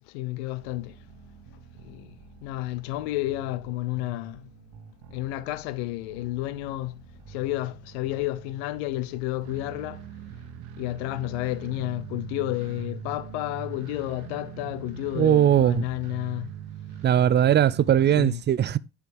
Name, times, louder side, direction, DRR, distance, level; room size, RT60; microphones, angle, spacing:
voice 1, 0.1-0.9 1.8-2.1 2.4-4.4 5.1-7.0 7.3-10.0 10.8-16.5 18.1-18.4, left 17 dB, 80° left, 0.6 m, -31 dB
sound 1, 0.6-18.2, right 8 dB, 70° right, 1.2 m, -43 dB
voice 2, 15.2-15.8 17.0-18.8, right 10 dB, 35° right, 0.4 m, -20 dB
10.5 x 4.9 x 3.4 m
hypercardioid pair, 65°, 32 cm